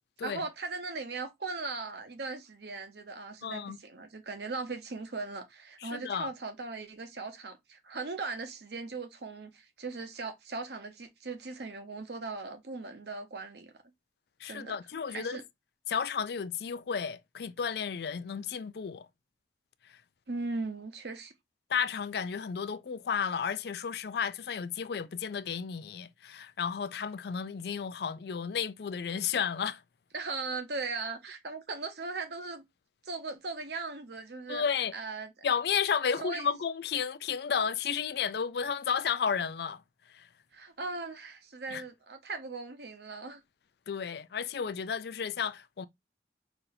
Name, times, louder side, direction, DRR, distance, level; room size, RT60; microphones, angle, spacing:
voice 1, 0.2-13.7 14.4-14.8 15.1-15.4 20.3-21.3 30.1-32.6 33.0-34.6 34.9-35.3 36.2-36.5 40.5-43.4, right 3 dB, 65° right, 0.8 m, -38 dB
voice 2, 3.4-3.8 5.8-6.3 14.4-15.4 15.9-19.1 19.9-20.0 21.7-29.8 34.5-34.9 35.4-39.8 40.1-40.3 41.7-41.8 43.9-45.9, left 7 dB, 60° left, 0.4 m, -32 dB
5.7 x 2.7 x 2.7 m
head